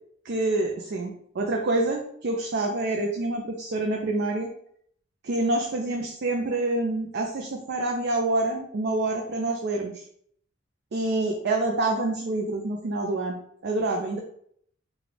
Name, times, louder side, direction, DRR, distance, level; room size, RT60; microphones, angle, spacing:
voice 1, 0.3-4.5 5.2-10.0 10.9-13.4 13.6-14.2, right 2 dB, 55° right, 1 dB, 0.4 m, -27 dB
3.8 x 2.3 x 3.2 m, 0.65 s
head